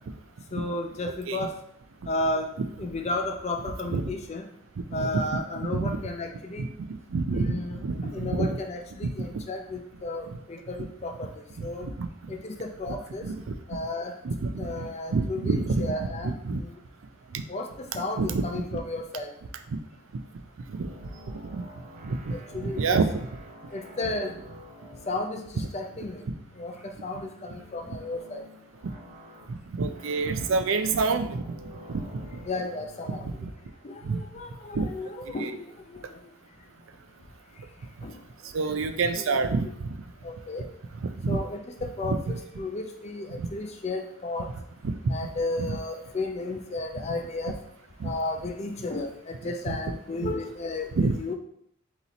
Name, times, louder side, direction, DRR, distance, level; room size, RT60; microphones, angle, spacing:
voice 1, 0.5-1.5 2.1-2.5 2.8-4.5 4.9-6.7 7.3-11.9 12.3-13.2 13.7-14.1 14.6-16.7 17.5-19.3 22.3-23.0 23.7-24.3 25.1-26.3 26.6-28.4 32.5-33.3 33.8-36.1 38.0-38.2 39.1-39.4 40.2-40.7 41.3-44.5 45.1-47.6 48.0-50.9 51.2-51.3, left 2 dB, 30° left, 4 dB, 0.4 m, -33 dB
voice 2, 1.0-1.5 3.9-4.0 5.0-5.1 5.7-6.0 6.6-6.7 7.1-7.5 7.8-8.6 11.6-11.7 12.0-12.1 13.2-13.3 14.2-14.5 14.8-15.9 16.2-16.6 18.2-18.8 20.8-20.9 21.5-21.6 22.0-22.3 22.6-23.1 29.8-31.4 31.9-32.0 33.4-33.5 34.0-34.2 34.8-34.9 35.4-35.5 38.5-39.9 41.2-41.4 42.0-42.4 44.8-45.1 45.6-45.7 48.0-48.1 49.7-49.8 50.2-50.3 51.0-51.1, right 4 dB, 80° right, 9 dB, 0.4 m, -27 dB
sound 1, 20.8-37.4, left 1 dB, 35° right, 0.8 m, -51 dB
4.1 x 3.0 x 4.0 m, 0.71 s
head